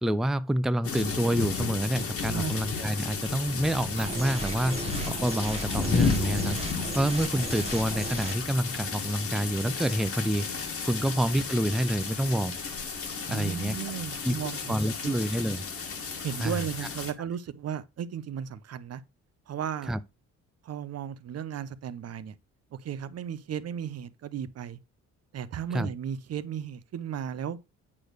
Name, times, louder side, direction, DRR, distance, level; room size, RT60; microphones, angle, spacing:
voice 1, 0.0-6.6 6.9-10.5 10.8-12.6 13.3-13.8 14.2-14.3 14.7-15.6 16.4-16.6 19.9-20.0 25.7-25.9, right 1 dB, ahead, 0.4 m, -28 dB
sound 1, 0.8-17.1, left 5 dB, 50° left, 1.7 m, -33 dB
sound 2, 4.0-8.4, right 4 dB, 20° right, 1.3 m, -36 dB
voice 2, 13.3-14.8 15.0-15.2 16.2-19.0 19.5-20.0 20.6-22.4 22.7-24.8 25.3-27.6, right 9 dB, 55° right, 0.8 m, -35 dB
8.6 x 3.3 x 6.5 m
cardioid pair, 90°, 30 cm